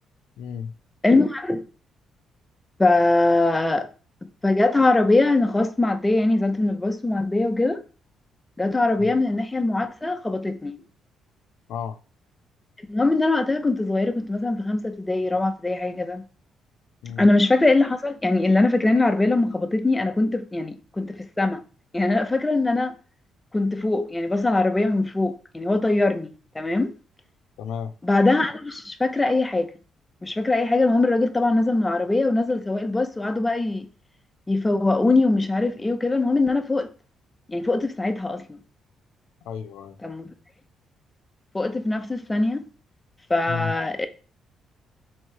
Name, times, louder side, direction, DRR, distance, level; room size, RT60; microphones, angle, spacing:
voice 1, 0.4-0.7 9.0-9.1 11.7-12.0 17.0-17.3 27.6-27.9 39.5-40.0 43.5-43.7, left 7 dB, 85° left, 0.4 m, -32 dB
voice 2, 1.0-1.6 2.8-3.9 4.4-7.8 8.6-10.8 12.9-16.2 17.2-21.6 21.9-23.0 23.5-26.9 28.0-29.7 30.2-33.9 34.5-36.9 37.5-38.6 40.0-40.3 41.5-42.6 43.3-44.1, left 2 dB, 15° left, 0.6 m, -22 dB
3.6 x 3.1 x 4.6 m
cardioid pair, 90°, 0 cm